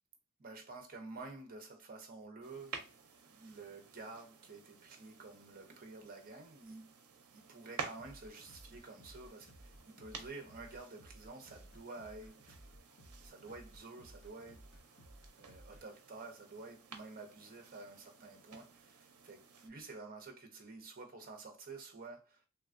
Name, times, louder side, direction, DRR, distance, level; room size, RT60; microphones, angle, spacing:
voice 1, 0.4-6.9 7.2-12.6 13.2-14.7 15.4-22.5, right 3 dB, 40° right, 0.7 m, -50 dB
sound 1, 2.4-19.7, right 6 dB, 75° right, 0.6 m, -52 dB
sound 2, 8.0-15.8, equal, 55° left, 0.7 m, -58 dB
3.2 x 2.3 x 2.4 m
head